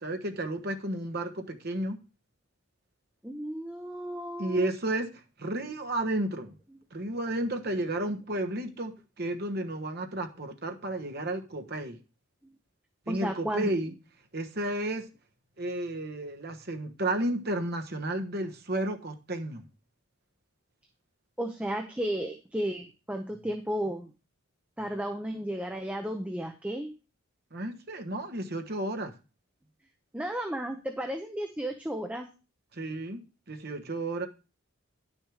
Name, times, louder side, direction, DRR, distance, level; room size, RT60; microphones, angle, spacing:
voice 1, 0.0-2.0 4.4-5.1 5.4-6.5 6.9-12.0 13.1-13.9 14.3-15.0 15.6-19.6 27.5-29.1 32.7-33.2 33.5-34.3, right 1 dB, 45° right, 1.2 m, -32 dB
voice 2, 3.2-4.7 13.1-13.7 21.4-24.1 24.8-26.9 30.1-32.3, right 1 dB, 5° right, 0.7 m, -33 dB
10.5 x 6.4 x 4.9 m
head